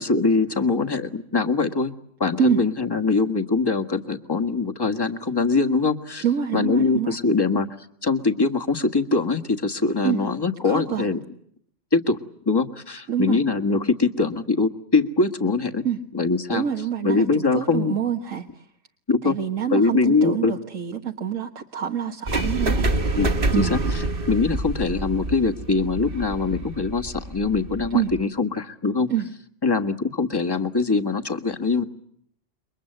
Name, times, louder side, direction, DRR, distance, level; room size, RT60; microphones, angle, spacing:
voice 1, 0.0-1.9 2.2-6.2 6.5-7.7 8.0-11.2 11.9-12.2 12.4-15.8 16.1-16.6 17.0-18.0 19.1-19.3 19.7-20.5 23.2-23.3 23.5-23.8 24.3-29.1 29.6-31.8, left 4 dB, 20° left, 5 dB, 1.6 m, -22 dB
voice 2, 6.2-7.2 10.0-10.2 10.6-11.1 13.1-13.4 15.8-16.0 16.5-18.7 19.2-22.9 23.5-23.8 27.9-28.1 29.1-29.3, right 9 dB, 90° right, 2 dB, 1.8 m, -26 dB
sound 1, 22.3-28.2, right 2 dB, 45° right, 1.6 m, -27 dB
29.0 x 23.5 x 7.9 m, 0.68 s
omnidirectional pair, 1.3 m